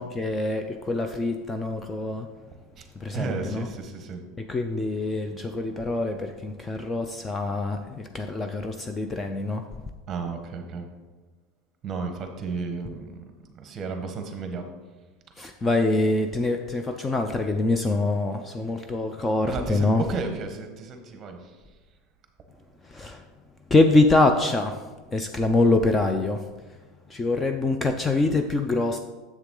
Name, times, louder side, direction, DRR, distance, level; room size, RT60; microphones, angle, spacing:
voice 1, 0.0-2.3 3.0-3.7 4.4-9.6 15.4-20.0 22.9-23.2 23.7-24.8 25.1-26.4 27.1-29.0, left 2 dB, 15° left, 6 dB, 0.4 m, -24 dB
voice 2, 3.1-4.2 10.1-10.9 11.8-13.1 13.6-14.6 19.5-21.4, right 4 dB, 30° right, 5 dB, 1.1 m, -33 dB
7.3 x 6.8 x 3.8 m, 1.2 s
supercardioid pair, 140°, 0 cm